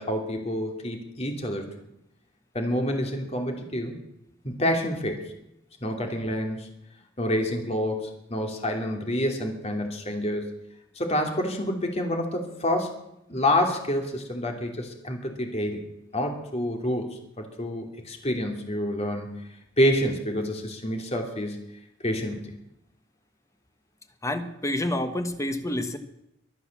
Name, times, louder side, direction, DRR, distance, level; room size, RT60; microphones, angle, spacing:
voice 1, 0.0-1.6 2.5-4.0 4.4-5.2 5.8-6.7 7.2-10.6 11.0-13.0 13.3-15.8 16.1-19.3 19.8-21.6 22.0-22.4, left 1 dB, 35° left, 3 dB, 2.8 m, -28 dB
voice 2, 24.2-26.0, left 1 dB, 15° left, 8 dB, 1.3 m, -28 dB
23.5 x 8.3 x 7.2 m, 0.83 s
head